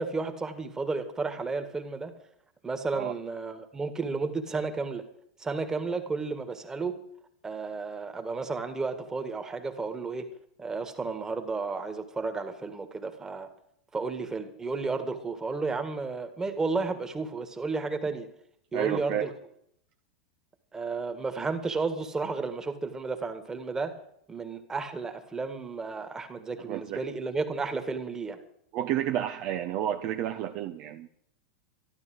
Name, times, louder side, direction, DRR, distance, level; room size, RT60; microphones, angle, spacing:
voice 1, 0.0-2.1 2.6-5.0 5.4-7.0 7.4-10.3 10.6-13.5 13.9-18.3 18.7-19.3 20.7-23.9 24.3-28.4, right 4 dB, 15° right, 1.9 m, -32 dB
voice 2, 18.7-19.3 26.7-27.0 28.7-31.1, right 11 dB, 45° right, 0.8 m, -31 dB
12.5 x 12.0 x 7.9 m
figure-of-eight pair, 90°, 4 cm